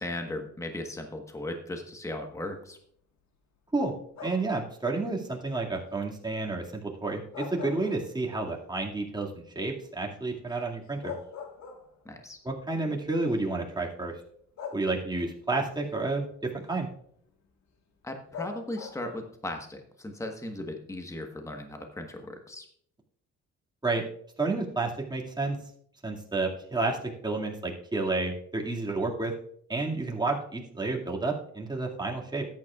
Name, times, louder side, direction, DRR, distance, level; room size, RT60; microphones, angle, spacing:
voice 1, 0.0-2.8 12.0-12.4 18.0-22.7, left 1 dB, 10° left, 4 dB, 1.3 m, -37 dB
sound 1, 4.1-4.7 7.1-8.5 8.9-9.0 10.6-10.7 11.0-12.2 13.2-13.3 14.6-15.3 18.3-19.2, left 6 dB, 65° left, 1.6 m, -41 dB
voice 2, 4.2-9.3 9.6-11.1 12.4-14.1 14.7-16.2 16.5-16.9 23.8-24.0 24.4-25.6 26.0-27.0 27.2-29.3 29.7-32.5, right 3 dB, 15° right, -1 dB, 2.2 m, -30 dB
13.5 x 9.6 x 2.4 m, 0.64 s
cardioid pair, 90°, 30 cm